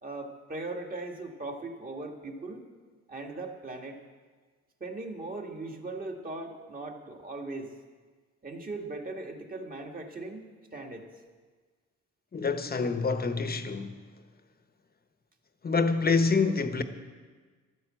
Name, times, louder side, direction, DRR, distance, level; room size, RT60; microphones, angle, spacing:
voice 1, 0.0-2.6 3.1-4.0 4.8-7.7 8.4-11.1, right 2 dB, 30° right, 2.0 m, -39 dB
voice 2, 12.3-14.0 15.6-16.8, left 4 dB, 30° left, 1.1 m, -26 dB
12.5 x 9.7 x 7.7 m
cardioid pair, 90°, 30 cm